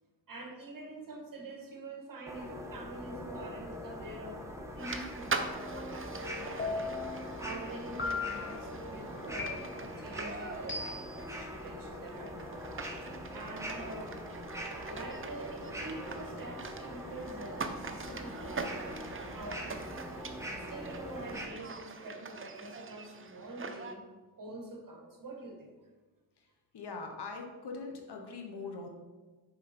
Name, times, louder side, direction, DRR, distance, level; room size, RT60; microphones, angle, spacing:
voice 1, 0.3-4.4 4.7-12.8 13.1-14.2 14.8-24.1 24.4-25.7, right 2 dB, 45° right, 1 dB, 1.7 m, -46 dB
sound 1, 2.3-21.5, equal, 5° right, 1.2 m, -42 dB
sound 2, 4.8-23.9, right 4 dB, 30° right, 0.8 m, -43 dB
sound 3, 6.6-7.2 8.0-8.6 9.4-10.0 10.7-11.3, left 4 dB, 25° left, 1.4 m, -37 dB
voice 2, 26.7-28.9, left 4 dB, 60° left, 3 dB, 1.4 m, -41 dB
6.9 x 5.1 x 4.4 m, 1.3 s
cardioid pair, 65°, 44 cm